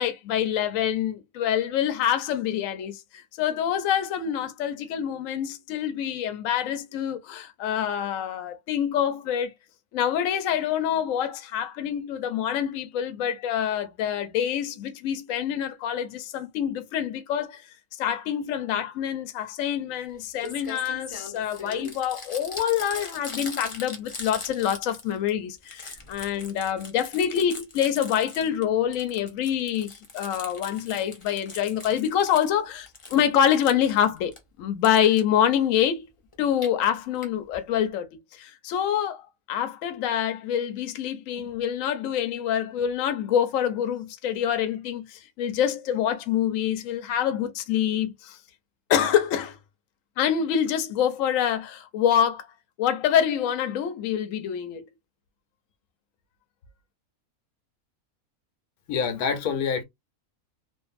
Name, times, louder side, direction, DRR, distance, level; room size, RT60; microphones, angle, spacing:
voice 1, 0.0-9.5 9.9-17.6 18.0-34.3 34.6-36.0 36.4-38.1 38.3-48.4 48.9-49.6 50.2-52.5 52.8-54.9, left 9 dB, 70° left, 1.0 m, -26 dB
Crumpling crinkling, 20.1-20.2 20.4-25.3 25.6-28.6 28.9-32.5 32.9-34.4 34.8-35.2 36.3-36.7 37.2-37.3 37.5-37.6 37.8-37.9, left 3 dB, 40° left, 0.4 m, -40 dB
voice 2, 58.9-59.8, left 6 dB, 90° left, 1.2 m, -26 dB
2.6 x 2.5 x 2.4 m
omnidirectional pair, 1.5 m